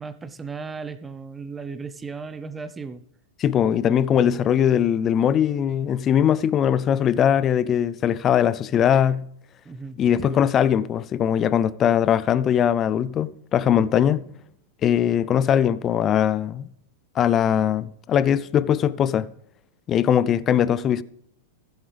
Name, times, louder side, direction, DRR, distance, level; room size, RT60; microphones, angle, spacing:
voice 1, 0.0-3.0 9.7-10.4, right 4 dB, 15° right, 0.6 m, -36 dB
voice 2, 3.4-9.3 10.0-14.2 14.8-16.7 17.2-19.3 19.9-21.0, left 9 dB, 30° left, 0.4 m, -20 dB
15.0 x 8.1 x 3.4 m
hypercardioid pair, 105°, 0 cm